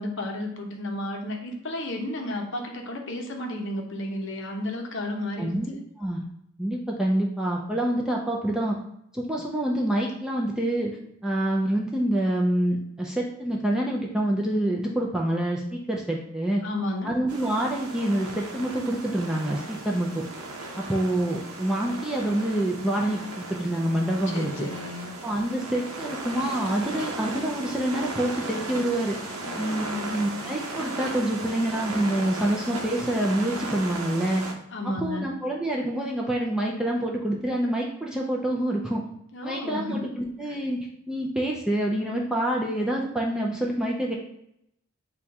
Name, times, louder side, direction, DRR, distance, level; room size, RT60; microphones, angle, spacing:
voice 1, 0.0-5.6 16.6-17.1 24.3-25.1 29.4-30.2 34.7-35.3 39.3-40.0 40.5-40.6, left 1 dB, 55° left, 2 dB, 0.7 m, -32 dB
voice 2, 5.4-6.2 6.6-8.8 9.1-10.9 11.2-16.6 17.0-20.2 20.8-24.5 25.2-29.2 29.6-34.4 34.8-39.0 39.4-40.8 41.1-44.1, right 1 dB, 5° right, -2 dB, 0.4 m, -27 dB
sound 1, 17.3-34.5, right 2 dB, 80° right, 0.7 m, -36 dB
4.2 x 2.3 x 4.7 m, 0.77 s
head